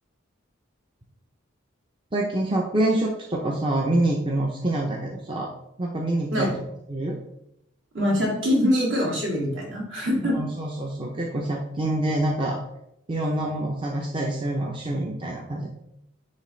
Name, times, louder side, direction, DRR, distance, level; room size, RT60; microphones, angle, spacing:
voice 1, 2.1-5.5 5.8-6.5 6.9-7.2 10.2-12.6 13.1-15.7, right 1 dB, 25° right, 0 dB, 0.6 m, -26 dB
voice 2, 7.9-10.4, left 1 dB, 65° right, -3 dB, 2.2 m, -23 dB
9.8 x 3.3 x 3.2 m, 0.79 s
head